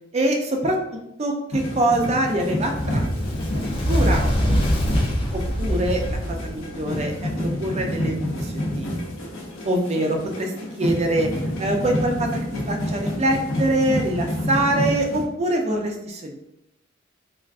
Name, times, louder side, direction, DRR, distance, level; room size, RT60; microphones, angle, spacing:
voice 1, 0.1-3.3 3.5-4.3 5.6-8.9 9.6-10.5 10.8-11.3 11.6-12.3 12.7-16.4, right 1 dB, 35° right, 2 dB, 0.4 m, -24 dB
sound 1, 1.5-15.3, left 1 dB, 85° left, 0.6 m, -29 dB
Fire, 2.6-7.2, equal, 25° left, 0.5 m, -24 dB
3.3 x 2.5 x 2.4 m, 0.83 s
head